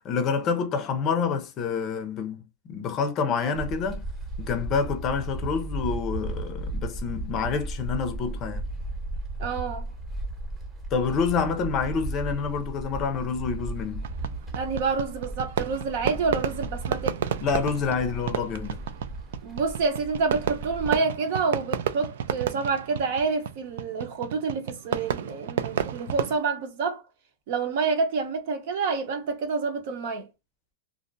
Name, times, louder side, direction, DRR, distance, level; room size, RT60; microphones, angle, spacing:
voice 1, 0.0-2.4 2.7-4.0 4.4-8.6 10.9-14.0 17.4-18.8, left 5 dB, 35° left, 0.5 m, -27 dB
sound 1, 3.5-20.9, right 1 dB, 15° right, 0.9 m, -36 dB
voice 2, 9.4-9.9 14.5-17.2 19.4-27.0 27.5-30.3, right 4 dB, 60° right, 0.9 m, -28 dB
Fireworks, 14.0-26.3, right 9 dB, 75° right, 0.3 m, -32 dB
2.5 x 2.1 x 2.6 m
supercardioid pair, 135°, 0 cm